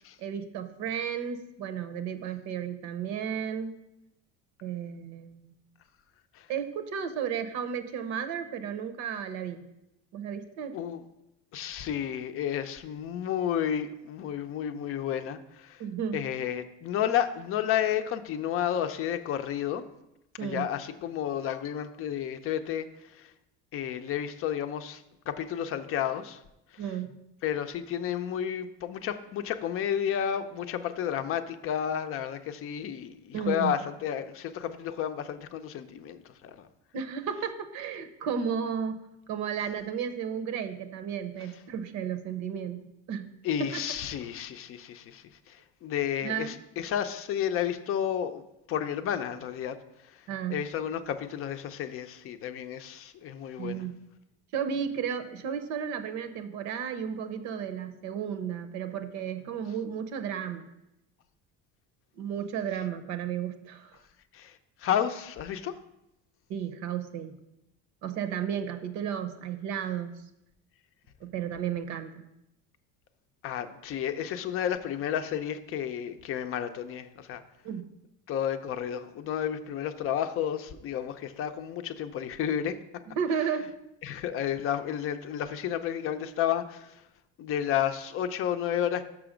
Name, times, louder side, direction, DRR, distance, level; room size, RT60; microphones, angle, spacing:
voice 1, 0.2-3.7 4.6-5.5 6.5-9.6 10.1-10.7 15.8-16.2 20.4-20.7 26.8-27.2 33.3-33.7 36.9-39.0 39.3-43.3 43.6-43.8 46.2-46.6 50.3-50.7 53.6-54.0 54.5-60.7 62.2-63.9 66.5-67.3 68.0-70.1 71.2-72.2 77.6-77.8 83.2-83.7, right 8 dB, 70° right, 9 dB, 0.8 m, -33 dB
voice 2, 11.5-15.8 16.1-19.8 20.4-22.9 23.2-23.3 23.7-26.4 27.4-36.6 43.4-48.4 48.7-49.8 50.5-53.8 64.3-64.5 64.8-65.7 73.4-77.4 78.3-82.8 84.0-86.9 87.4-89.0, left 9 dB, 45° left, 10 dB, 0.5 m, -31 dB
6.2 x 5.9 x 5.0 m, 0.87 s
cardioid pair, 140°, 30 cm